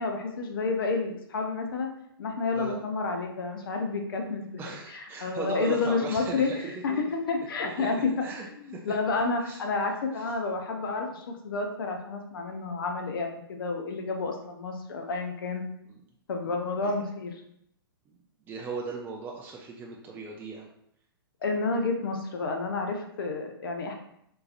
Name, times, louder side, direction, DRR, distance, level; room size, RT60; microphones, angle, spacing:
voice 1, 0.0-1.9 2.2-4.5 4.9-6.5 6.8-8.1 8.6-15.6 16.3-17.3 21.4-23.9, left 3 dB, 60° left, 3 dB, 0.7 m, -30 dB
voice 2, 4.6-7.0 7.6-9.0 9.4-9.6 10.1-10.3 15.9-16.0 16.8-16.9 18.5-20.7, right 4 dB, 15° right, -1 dB, 0.4 m, -38 dB
3.8 x 2.8 x 2.5 m, 0.74 s
figure-of-eight pair, 115°, 13 cm